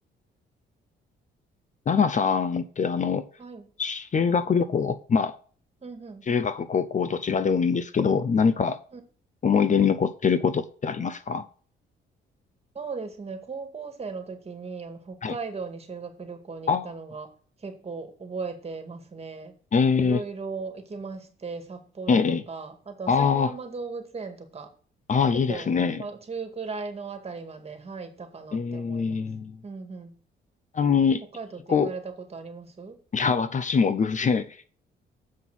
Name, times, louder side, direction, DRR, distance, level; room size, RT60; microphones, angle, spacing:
voice 1, 1.9-3.3 3.8-5.4 6.3-8.8 9.4-11.4 15.2-15.3 16.7-16.9 19.7-20.2 22.1-22.4 23.1-23.5 25.1-26.0 28.5-29.6 30.7-31.2 31.7-31.9 33.1-34.7, left 6 dB, 40° left, 0.7 m, -23 dB
voice 2, 5.8-6.3 8.9-9.0 12.7-17.3 17.6-19.5 20.0-22.2 22.5-24.7 25.5-29.3 29.6-30.1 31.3-33.0, right 4 dB, 30° right, 2.1 m, -37 dB
7.5 x 5.8 x 6.1 m
cardioid pair, 90°, 20 cm